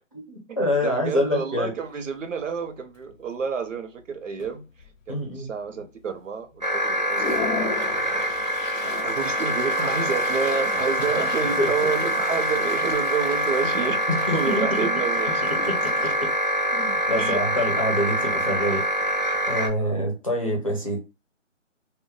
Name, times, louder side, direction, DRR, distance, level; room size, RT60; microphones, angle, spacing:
voice 1, 0.1-1.7 5.1-5.5 11.2-11.3 11.6-11.9 14.1-14.9 15.5-16.3 16.7-21.0, left 1 dB, 30° left, 0.6 m, -27 dB
voice 2, 0.8-4.7 5.1-8.4 9.0-15.4 17.2-17.4 19.8-20.0, right 5 dB, 85° right, 0.7 m, -29 dB
Toilet flush, 1.8-1.9 2.4-2.7 2.9-3.5 4.0-4.1 4.4-5.2 5.6-5.7 6.2-6.3 6.8-18.7, left 5 dB, 85° left, 0.6 m, -38 dB
sound 1, 6.6-19.7, equal, 35° right, 0.5 m, -25 dB
2.2 x 2.1 x 3.8 m
hypercardioid pair, 175°, 37 cm